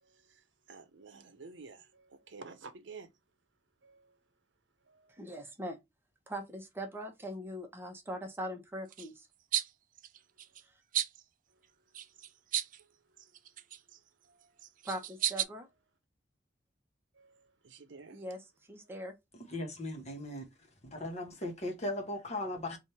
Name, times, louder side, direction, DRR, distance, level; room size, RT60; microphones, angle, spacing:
voice 1, 0.0-3.1 3.8-4.2 4.8-5.2 11.5-11.6 12.8-12.9 14.2-14.6 15.2-15.6 17.1-18.3 18.8-19.0, right 4 dB, 75° right, 0.7 m, -52 dB
voice 2, 5.2-5.8 6.3-9.3 14.8-15.7 18.1-18.4 18.7-19.1, equal, 15° right, 0.9 m, -41 dB
sound 1, 8.9-9.1 9.5-9.7 10.0-10.6 10.9-11.2 11.9-12.8 13.2-14.0 14.6-15.4, right 12 dB, 45° right, 0.4 m, -34 dB
voice 3, 19.3-20.5 20.8-22.8, left 1 dB, 40° left, 1.1 m, -38 dB
3.4 x 2.5 x 4.2 m
head